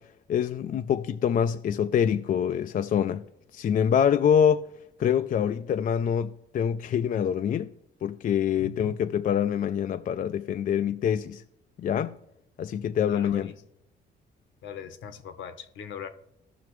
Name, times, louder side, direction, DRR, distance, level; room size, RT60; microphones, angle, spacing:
voice 1, 0.3-3.2 3.5-4.6 5.0-7.7 8.0-11.4 11.8-12.1 12.6-13.5, left 8 dB, 45° left, 0.4 m, -25 dB
voice 2, 8.6-8.9 13.1-13.6 14.6-16.1, left 7 dB, 75° left, 0.9 m, -40 dB
15.0 x 5.7 x 3.1 m
cardioid pair, 90°, 20 cm